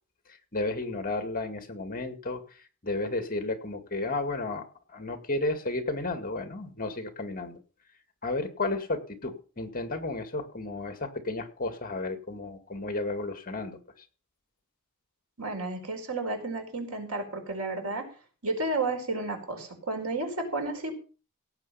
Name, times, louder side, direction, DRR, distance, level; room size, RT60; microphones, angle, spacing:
voice 1, 0.5-7.6 8.2-13.8, left 2 dB, 40° left, 8 dB, 2.1 m, -33 dB
voice 2, 15.4-18.0 18.4-20.9, right 2 dB, 85° right, 4 dB, 4.7 m, -32 dB
17.0 x 8.0 x 5.7 m, 0.37 s
head